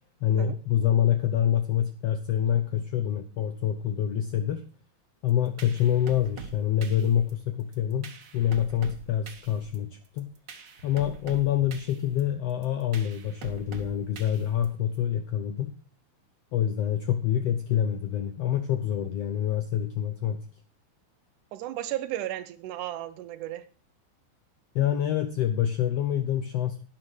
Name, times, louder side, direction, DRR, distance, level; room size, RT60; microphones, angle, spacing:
voice 1, 0.2-4.7 5.2-10.3 10.8-15.7 16.5-20.4 24.7-26.8, left 10 dB, 75° left, 1.4 m, -26 dB
sound 1, 5.3-15.0, right 5 dB, 50° right, 1.3 m, -45 dB
voice 2, 21.5-23.7, right 13 dB, 75° right, 2.0 m, -34 dB
11.5 x 9.7 x 4.9 m
omnidirectional pair, 3.9 m